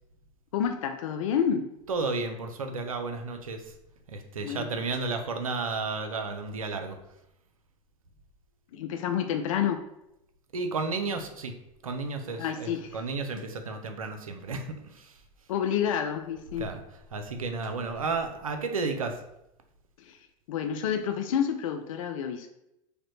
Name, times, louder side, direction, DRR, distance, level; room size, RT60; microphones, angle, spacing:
voice 1, 0.5-1.7 4.4-4.8 8.7-9.8 12.4-13.0 15.5-16.7 20.0-20.2 20.5-22.5, left 8 dB, 75° left, 6 dB, 0.4 m, -29 dB
voice 2, 1.9-3.7 4.1-7.0 10.5-11.5 11.8-15.1 16.6-16.8 17.1-19.1, right 3 dB, 90° right, 6 dB, 0.5 m, -32 dB
5.0 x 2.1 x 3.0 m, 0.84 s
hypercardioid pair, 85°, 17 cm